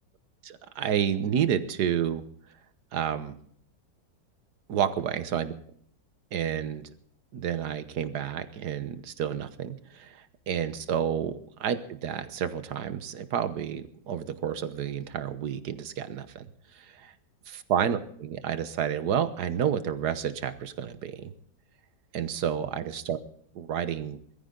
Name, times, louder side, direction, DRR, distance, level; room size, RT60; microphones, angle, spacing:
voice 1, 0.4-2.2 2.9-3.4 4.7-5.5 6.3-6.8 7.3-10.2 10.5-16.4 17.0-17.1 17.5-21.3 22.1-23.2 23.5-24.2, right 8 dB, 65° right, 11 dB, 1.6 m, -30 dB
21.5 x 14.0 x 3.9 m, 0.62 s
omnidirectional pair, 2.0 m